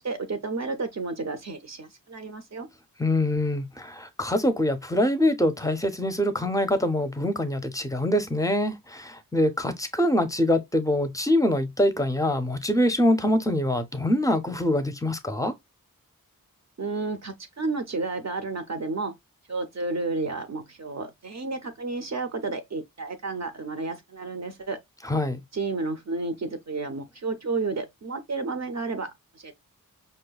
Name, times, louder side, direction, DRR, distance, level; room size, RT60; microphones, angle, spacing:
voice 1, 0.0-2.7 16.8-19.1 19.5-24.8 25.5-29.5, right 3 dB, 50° right, 0.6 m, -31 dB
voice 2, 3.0-15.5 25.0-25.4, left 1 dB, 10° left, 0.5 m, -24 dB
5.3 x 2.1 x 2.2 m
wide cardioid pair, 75°, 34 cm